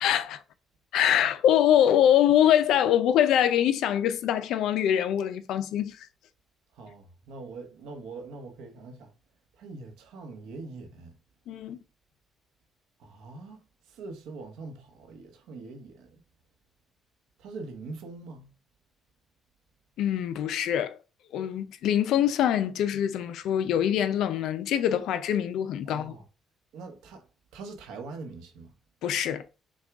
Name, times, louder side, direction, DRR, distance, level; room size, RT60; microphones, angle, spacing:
voice 1, 0.0-0.4 0.9-6.1 11.5-11.8 20.0-20.9 21.3-26.2 29.0-29.4, left 10 dB, 75° left, 0.5 m, -24 dB
voice 2, 6.7-9.1 9.6-11.1 13.0-13.6 13.9-16.2 17.4-18.5 25.9-26.2 26.7-27.2 27.5-28.7, right 3 dB, 90° right, 1.1 m, -43 dB
6.2 x 2.4 x 3.6 m
cardioid pair, 140°, 0 cm